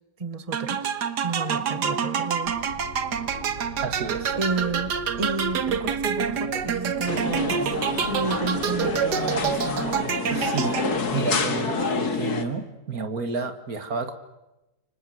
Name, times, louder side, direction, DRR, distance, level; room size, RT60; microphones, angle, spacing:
voice 1, 0.2-0.9 1.2-2.5 4.3-7.7 8.0-9.8, right 3 dB, 20° right, 11 dB, 1.6 m, -31 dB
sound 1, 0.5-11.2, right 7 dB, 85° right, 1.9 m, -27 dB
sound 2, 2.4-11.9, left 1 dB, 90° left, 8.2 m, -44 dB
voice 2, 3.8-4.3 10.3-10.8 11.1-14.1, right 4 dB, 60° right, 9 dB, 2.3 m, -30 dB
sound 3, 7.1-12.5, left 4 dB, 70° left, 2.6 m, -28 dB
28.5 x 25.5 x 7.8 m, 1.0 s
omnidirectional pair, 1.8 m